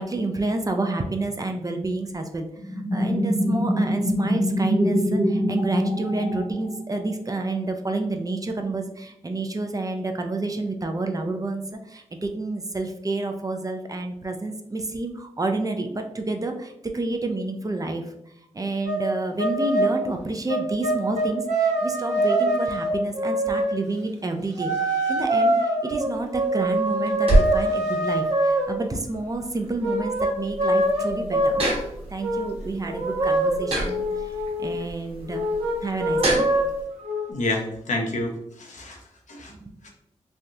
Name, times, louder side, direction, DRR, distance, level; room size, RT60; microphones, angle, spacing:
voice 1, 0.0-18.1 18.5-34.3 34.6-35.5 35.8-36.5 39.5-39.7, right 2 dB, 30° right, 4 dB, 0.5 m, -29 dB
sound 1, 2.6-7.1, equal, 5° right, 1.0 m, -24 dB
sound 2, 18.9-19.1 19.4-20.0 20.5-23.8 24.6-28.8 29.8-31.8 32.2-32.5 32.9-34.8 35.3-37.3, right 1 dB, 70° right, 0.8 m, -24 dB
sound 3, 26.1-36.8, right 1 dB, 45° right, 1.1 m, -29 dB
voice 2, 37.3-39.5 39.8-39.9, left 2 dB, 70° left, 0 dB, 0.8 m, -29 dB
3.2 x 2.3 x 2.6 m, 0.79 s
cardioid pair, 50°, 13 cm